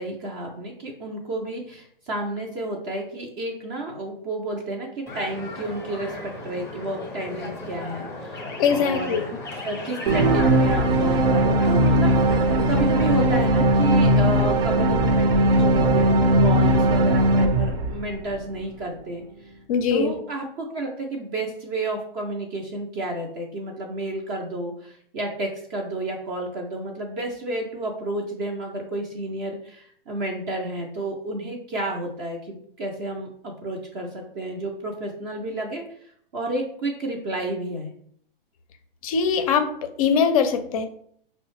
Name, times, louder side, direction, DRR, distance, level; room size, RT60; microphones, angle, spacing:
voice 1, 0.0-6.2 6.4-8.4 8.7-9.2 9.6-12.3 12.7-19.5 19.9-37.9, right 2 dB, 20° right, 0 dB, 0.4 m, -31 dB
sound 1, 5.1-13.2, left 2 dB, 10° left, 0.7 m, -36 dB
voice 2, 8.6-9.2 19.7-20.1 39.0-40.9, left 6 dB, 40° left, 9 dB, 0.4 m, -22 dB
sound 2, 10.1-18.5, right 1 dB, 80° right, 0.7 m, -19 dB
5.3 x 2.1 x 3.0 m, 0.64 s
hypercardioid pair, 140°, 29 cm